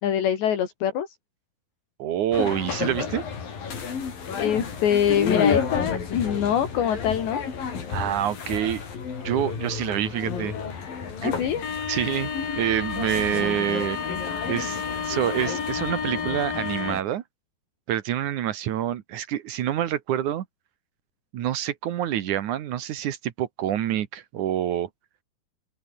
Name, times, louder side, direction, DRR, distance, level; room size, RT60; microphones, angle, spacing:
voice 1, 0.0-1.1 4.3-7.4 11.2-11.6, left 9 dB, 75° left, 5.2 m, -24 dB
voice 2, 2.0-3.2 7.9-8.8 9.2-10.6 11.2-11.3 11.9-14.0 14.5-17.2 17.9-20.5 21.3-24.9, right 11 dB, 65° right, 2.1 m, -27 dB
sound 1, 2.3-17.0, left 6 dB, 55° left, 5.8 m, -30 dB
open air
omnidirectional pair, 5.1 m